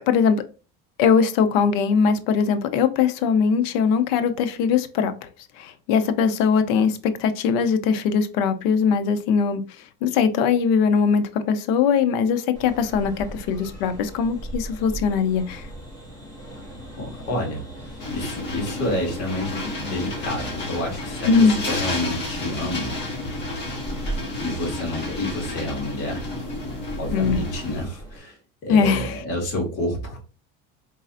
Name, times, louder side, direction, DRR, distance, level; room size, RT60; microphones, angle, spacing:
voice 1, 0.1-0.4 1.0-5.3 5.6-9.6 10.0-15.7 21.3-21.6 27.1-27.4 28.7-29.2, left 6 dB, 75° left, 0.7 m, -21 dB
sound 1, 12.5-28.2, right 1 dB, 15° left, 2.1 m, -38 dB
voice 2, 16.9-23.0 24.4-26.3 27.0-30.2, left 1 dB, 55° left, 2.2 m, -29 dB
sound 2, 18.0-27.9, left 2 dB, 40° left, 1.7 m, -31 dB
4.1 x 3.9 x 2.5 m
supercardioid pair, 125°, 29 cm